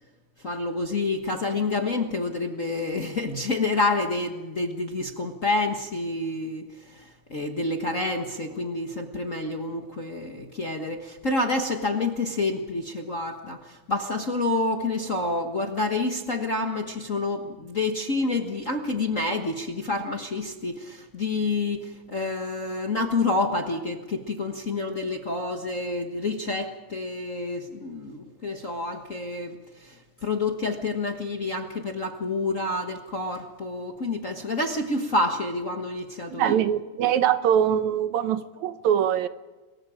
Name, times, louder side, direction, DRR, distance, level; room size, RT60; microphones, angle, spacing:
voice 1, 0.4-30.0 30.2-36.5, left 2 dB, 40° left, 3 dB, 1.2 m, -28 dB
voice 2, 36.3-39.3, right 9 dB, 80° right, 11 dB, 2.3 m, -23 dB
27.0 x 22.5 x 5.0 m, 1.2 s
omnidirectional pair, 3.3 m